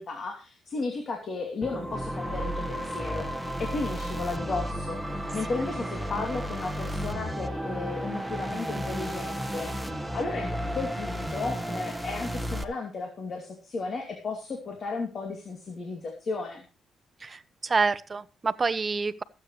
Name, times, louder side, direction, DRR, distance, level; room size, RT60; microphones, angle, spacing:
voice 1, 0.0-3.3 3.6-10.5 10.7-16.6, left 3 dB, 45° left, 2.7 m, -34 dB
sound 1, 1.6-12.6, equal, 5° right, 1.4 m, -33 dB
voice 2, 17.2-19.2, right 4 dB, 30° right, 0.8 m, -27 dB
22.0 x 8.6 x 3.2 m
cardioid pair, 90°, 0 cm